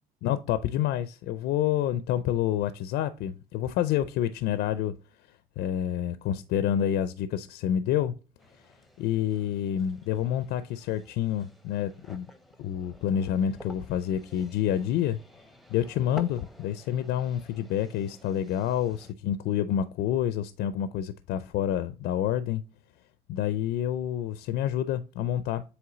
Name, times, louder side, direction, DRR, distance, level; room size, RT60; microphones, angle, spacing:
voice 1, 0.2-4.9 5.6-8.1 9.0-12.3 12.6-15.2 15.7-22.6 23.3-25.6, left 10 dB, 85° left, 0.5 m, -28 dB
sound 1, 8.4-19.1, equal, ahead, 0.7 m, -51 dB
7.9 x 3.1 x 3.9 m
cardioid pair, 110°, 17 cm